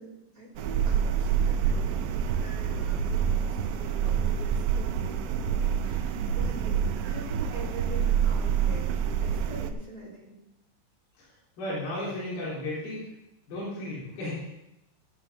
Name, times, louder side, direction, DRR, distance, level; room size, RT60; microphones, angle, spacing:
voice 1, 0.0-10.4, right 1 dB, 10° right, -6 dB, 2.9 m, -44 dB
sound 1, 0.6-9.7, right 8 dB, 90° right, 2.9 m, -27 dB
voice 2, 11.6-13.0 13.5-14.5, left 1 dB, 55° left, -8 dB, 5.6 m, -34 dB
15.5 x 6.4 x 5.8 m, 0.89 s
omnidirectional pair, 5.1 m